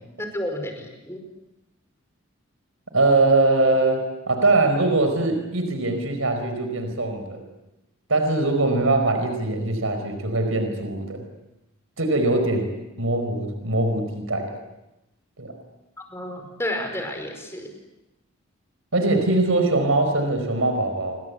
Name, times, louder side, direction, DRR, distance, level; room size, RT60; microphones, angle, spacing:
voice 1, 0.2-1.2 16.0-17.7, left 1 dB, 15° left, 4 dB, 5.2 m, -31 dB
voice 2, 2.9-7.4 8.1-11.2 12.0-14.5 15.4-15.5 18.9-21.2, right 2 dB, 85° right, 6 dB, 4.8 m, -22 dB
28.5 x 24.5 x 8.5 m, 0.95 s
head